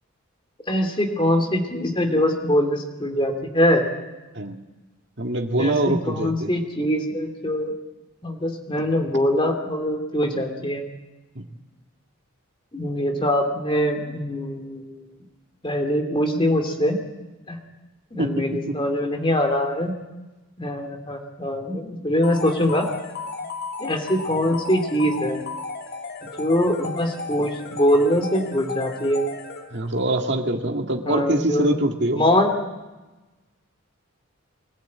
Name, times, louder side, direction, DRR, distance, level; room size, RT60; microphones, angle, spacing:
voice 1, 0.7-3.9 5.6-7.7 8.2-10.8 12.7-14.9 15.6-17.0 17.5-17.6 18.1-19.9 20.6-22.9 23.8-25.4 26.4-29.3 31.0-31.8 32.1-32.5, equal, 25° left, 3 dB, 2.8 m, -23 dB
voice 2, 5.2-6.5 11.4-11.5 18.2-18.7 29.7-32.2, right 1 dB, 55° right, 3 dB, 2.0 m, -24 dB
sound 1, 22.2-30.0, left 4 dB, 45° left, 2.2 m, -34 dB
24.0 x 16.5 x 8.6 m, 1.1 s
head